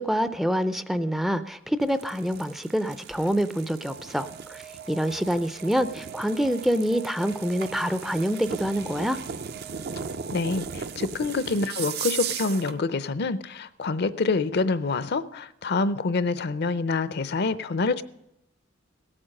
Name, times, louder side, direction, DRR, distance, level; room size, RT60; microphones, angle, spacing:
voice 1, 0.0-4.6 4.9-9.2, equal, ahead, 12 dB, 0.4 m, -26 dB
sound 1, 1.8-12.8, right 7 dB, 55° right, 0.5 m, -37 dB
Alarm, 3.9-10.9, right 6 dB, 85° right, 1.2 m, -45 dB
voice 2, 10.3-18.0, left 3 dB, 55° left, 15 dB, 0.6 m, -26 dB
17.0 x 8.8 x 6.5 m, 0.85 s
head